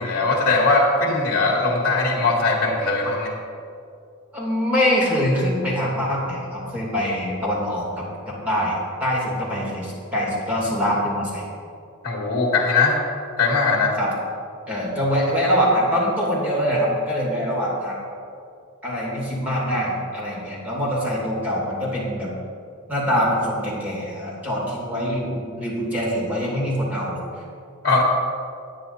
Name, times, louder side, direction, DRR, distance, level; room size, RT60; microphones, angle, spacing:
voice 1, 0.0-3.3 12.0-13.0 13.4-13.9 27.8-28.0, left 3 dB, 45° left, -2 dB, 1.9 m, -20 dB
voice 2, 4.3-11.4 14.0-14.1 14.7-18.0 18.8-22.3 22.9-27.2, equal, 5° right, -6 dB, 2.6 m, -24 dB
9.9 x 9.7 x 4.2 m, 2.4 s
head